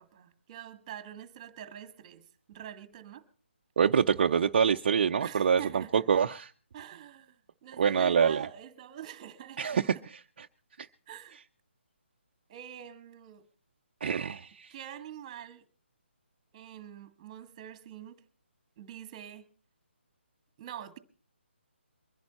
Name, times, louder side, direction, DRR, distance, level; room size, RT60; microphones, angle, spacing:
voice 1, 0.0-3.2 5.2-6.1 6.7-7.3 7.6-10.0 11.1-11.4 12.5-13.4 14.7-15.6 16.5-18.2 18.8-19.5 20.6-21.0, right 10 dB, 25° right, 1.7 m, -45 dB
voice 2, 3.8-6.5 7.8-8.5 9.6-10.2 14.0-14.7, right 7 dB, 45° right, 0.6 m, -26 dB
23.0 x 10.5 x 4.3 m
hypercardioid pair, 160°, 7 cm